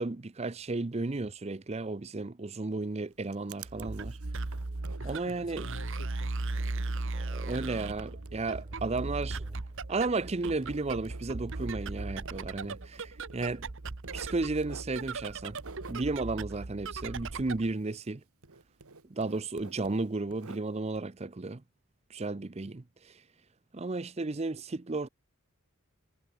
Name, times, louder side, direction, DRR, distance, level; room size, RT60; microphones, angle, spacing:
voice 1, 0.0-4.2 5.0-5.7 7.3-9.4 9.9-13.6 14.1-15.6 15.9-18.2 19.1-21.6 22.1-23.1 23.7-25.1, right 3 dB, 30° right, 0.6 m, -33 dB
Writing, 2.8-18.2 18.4-21.0, right 4 dB, 80° right, 1.8 m, -52 dB
sound 1, 3.6-17.7, right 3 dB, 60° right, 1.0 m, -37 dB
voice 2, 5.0-7.4, left 1 dB, 65° left, 5.3 m, -51 dB
sound 2, 7.1-15.4, equal, 10° right, 3.5 m, -58 dB
head